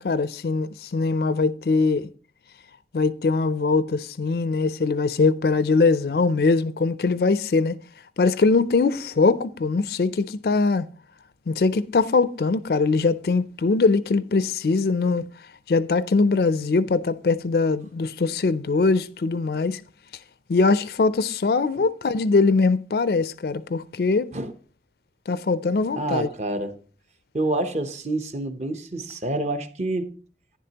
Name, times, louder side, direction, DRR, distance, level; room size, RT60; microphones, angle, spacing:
voice 1, 0.0-2.1 2.9-7.8 8.2-10.9 11.5-15.3 15.7-19.8 20.5-24.3 25.3-26.3, left 4 dB, 60° left, 0.4 m, -22 dB
voice 2, 26.0-26.8 27.3-30.1, right 2 dB, 40° right, 0.8 m, -27 dB
11.0 x 10.0 x 2.9 m
head